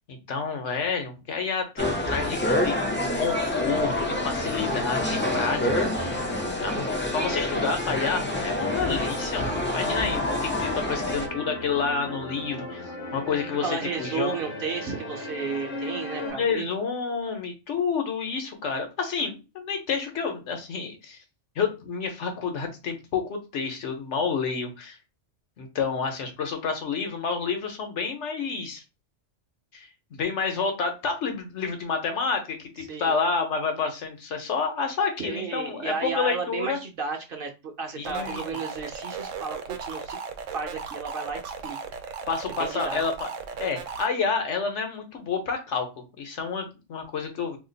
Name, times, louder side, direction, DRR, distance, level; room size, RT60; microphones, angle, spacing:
voice 1, 0.1-2.8 3.2-6.2 6.6-12.8 13.1-13.7 14.0-14.4 16.2-21.2 21.5-25.0 25.6-28.8 29.7-36.8 37.9-38.4 42.3-43.3 43.6-45.9 46.2-47.6, left 5 dB, 70° left, 4 dB, 1.2 m, -29 dB
sound 1, 1.8-11.3, left 1 dB, 20° left, 0.3 m, -27 dB
sound 2, 2.6-16.3, left 2 dB, 50° left, 0.9 m, -37 dB
voice 2, 13.6-16.7 32.8-33.1 35.2-40.2 40.5-41.8 42.1-42.2 42.6-43.0, right 5 dB, 55° right, 4 dB, 0.9 m, -33 dB
sound 3, 38.0-44.1, right 6 dB, 85° right, 0.9 m, -36 dB
2.8 x 2.4 x 3.9 m, 0.28 s
omnidirectional pair, 1.3 m